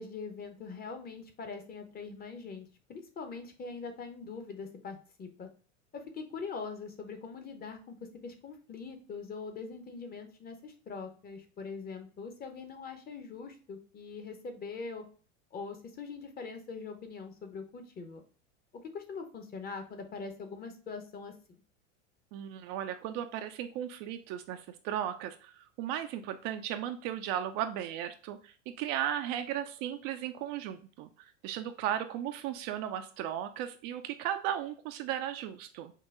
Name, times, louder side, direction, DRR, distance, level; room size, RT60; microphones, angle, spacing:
voice 1, 0.0-5.5 5.9-15.1 15.5-18.2 18.8-21.3, left 4 dB, 25° left, 6 dB, 0.8 m, -42 dB
voice 2, 22.3-31.1 31.4-35.9, right 10 dB, 45° right, 8 dB, 0.4 m, -36 dB
5.5 x 2.2 x 3.6 m, 0.40 s
hypercardioid pair, 85°, 37 cm